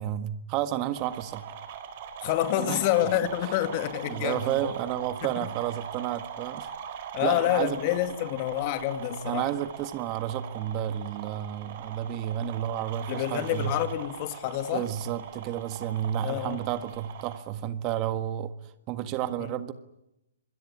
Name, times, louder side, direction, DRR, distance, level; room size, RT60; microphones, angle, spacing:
voice 1, 0.0-1.5 2.6-2.8 4.1-6.7 7.2-7.8 9.3-13.7 14.7-19.7, right 11 dB, 30° right, 1.6 m, -31 dB
sound 1, 0.9-17.4, right 7 dB, 45° right, 4.2 m, -41 dB
voice 2, 2.2-4.6 5.4-5.5 7.1-9.5 13.1-14.9 16.2-16.6 19.4-19.6, left 13 dB, 35° left, 2.4 m, -28 dB
27.0 x 21.5 x 8.9 m
hypercardioid pair, 145°, 0 cm